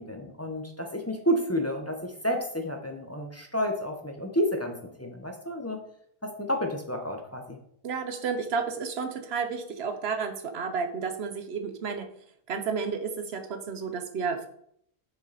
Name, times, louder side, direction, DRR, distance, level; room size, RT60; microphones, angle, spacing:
voice 1, 0.0-5.8 6.2-7.6, equal, 15° left, 2 dB, 0.9 m, -30 dB
voice 2, 7.8-12.1 12.5-14.5, right 5 dB, 85° right, 7 dB, 1.1 m, -31 dB
6.6 x 6.6 x 4.1 m, 0.69 s
omnidirectional pair, 1.0 m